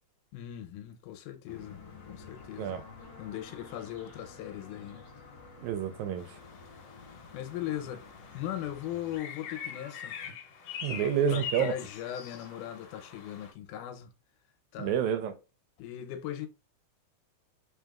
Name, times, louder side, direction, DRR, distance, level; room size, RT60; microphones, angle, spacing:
voice 1, 0.3-1.8 2.1-2.8 3.2-5.0 7.3-8.1 8.3-10.2 10.9-14.1 14.7-15.0 15.8-16.5, left 11 dB, 85° left, 2.2 m, -39 dB
sound 1, 1.5-9.2, left 4 dB, 50° left, 1.6 m, -50 dB
voice 2, 5.6-6.3 10.8-11.7 14.8-15.3, right 8 dB, 80° right, 1.9 m, -28 dB
sound 2, 6.2-13.5, left 7 dB, 65° left, 1.8 m, -44 dB
4.4 x 3.4 x 2.3 m
omnidirectional pair, 3.5 m